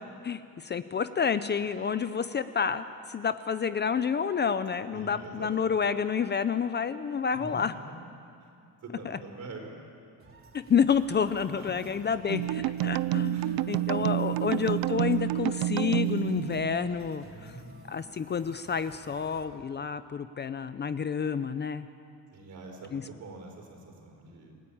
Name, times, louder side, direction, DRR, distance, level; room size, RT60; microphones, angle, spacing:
voice 1, 0.2-7.7 9.0-9.2 10.5-17.5 17.9-21.9 22.9-23.0, left 6 dB, 30° left, 12 dB, 0.6 m, -29 dB
voice 2, 4.9-5.8 7.3-7.9 8.4-8.5 8.8-9.8 11.6-11.9 13.3-13.6 14.0-14.1 14.4-14.7 17.2-17.8 22.3-24.5, right 2 dB, 55° right, 2 dB, 5.0 m, -45 dB
sound 1, 10.2-19.5, right 2 dB, 35° right, 3.6 m, -54 dB
sound 2, 12.3-17.1, right 15 dB, 90° right, 0.6 m, -29 dB
29.0 x 16.5 x 8.7 m, 2.5 s
cardioid pair, 145°, 35 cm